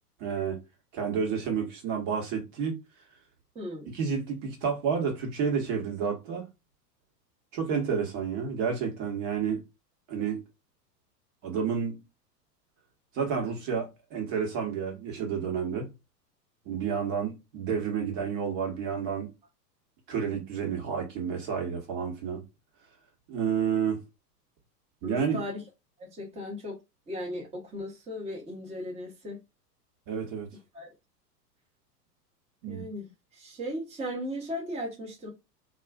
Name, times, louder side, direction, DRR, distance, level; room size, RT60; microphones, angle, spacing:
voice 1, 0.2-0.6 0.9-2.8 3.9-6.4 7.5-9.6 10.1-10.4 11.4-12.0 13.1-15.9 16.7-19.3 20.1-22.4 23.3-24.0 25.0-25.4 30.1-30.5 32.6-32.8, right 6 dB, 50° right, 1.2 m, -30 dB
voice 2, 3.5-3.9 25.0-25.6 26.0-26.8 27.1-29.4 30.7-30.9 32.7-35.3, equal, 15° right, 0.8 m, -37 dB
2.4 x 2.3 x 2.3 m
hypercardioid pair, 105°, 49 cm